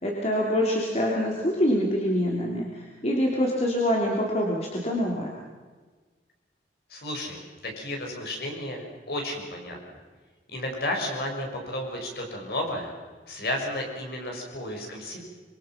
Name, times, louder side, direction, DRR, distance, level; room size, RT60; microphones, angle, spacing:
voice 1, 0.0-5.3, equal, 35° left, -2 dB, 3.2 m, -25 dB
voice 2, 6.9-9.8 10.5-12.9 13.3-15.2, left 1 dB, 60° left, 1 dB, 6.2 m, -32 dB
25.5 x 24.0 x 6.0 m, 1.4 s
head